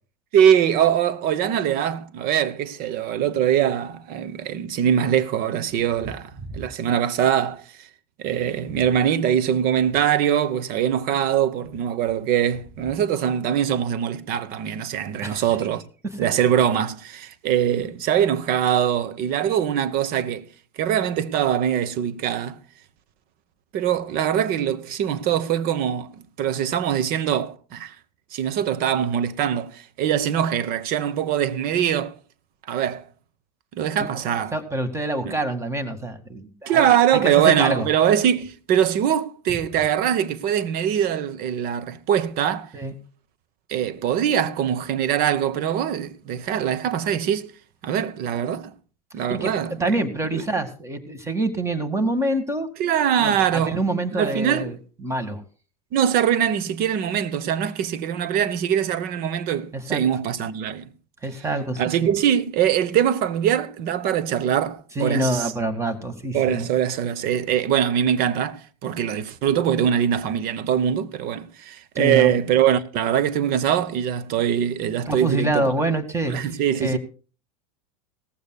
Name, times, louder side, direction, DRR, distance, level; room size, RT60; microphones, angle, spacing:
voice 1, 0.3-7.9 8.2-15.8 16.2-20.5 20.8-22.6 23.7-27.9 28.3-32.2 32.7-33.1 33.7-34.5 35.2-35.3 36.7-42.7 43.7-47.5 47.8-48.7 49.1-50.0 50.3-50.4 52.8-53.8 54.1-54.7 55.9-60.9 61.8-65.5 66.3-75.7 76.3-77.0, right 9 dB, 45° right, 1.2 m, -22 dB
voice 2, 34.5-36.9 37.2-37.9 42.7-42.9 49.3-52.7 53.2-55.4 59.7-60.0 61.2-61.9 65.0-66.7 72.0-72.3 75.1-76.5 76.8-77.0, right 2 dB, 15° right, 2.1 m, -26 dB
18.0 x 15.0 x 2.4 m
hypercardioid pair, 100°, 21 cm